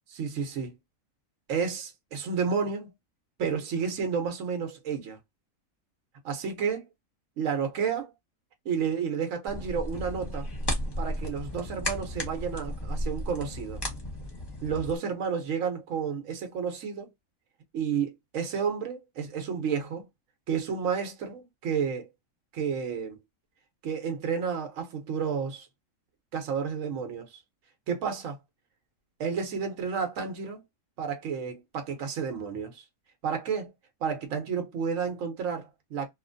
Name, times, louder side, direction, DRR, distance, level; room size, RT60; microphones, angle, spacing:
voice 1, 0.1-0.7 1.5-2.9 3.4-5.2 6.2-6.9 7.4-8.1 8.6-10.5 11.0-13.8 14.6-17.1 17.7-20.1 20.5-22.1 22.5-23.2 23.8-25.7 26.3-27.4 27.9-28.4 29.2-30.6 31.0-32.8 33.2-33.7 34.0-36.1, right 6 dB, 75° right, 1.1 m, -31 dB
sound 1, 9.5-15.0, left 1 dB, 20° left, 0.9 m, -34 dB
2.8 x 2.5 x 2.5 m
omnidirectional pair, 1.4 m